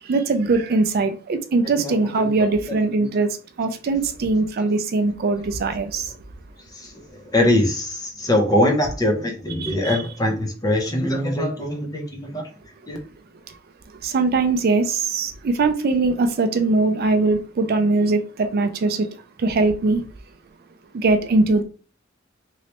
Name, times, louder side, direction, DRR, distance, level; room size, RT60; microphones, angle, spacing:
voice 1, 0.1-6.1 9.6-10.0 14.0-19.1 19.4-20.0 20.9-21.6, right 3 dB, 50° right, 0.4 m, -21 dB
voice 2, 1.8-2.5 3.0-3.1 6.7-12.4 12.9-13.0, left 1 dB, 20° left, 0.7 m, -23 dB
3.1 x 2.9 x 2.9 m
head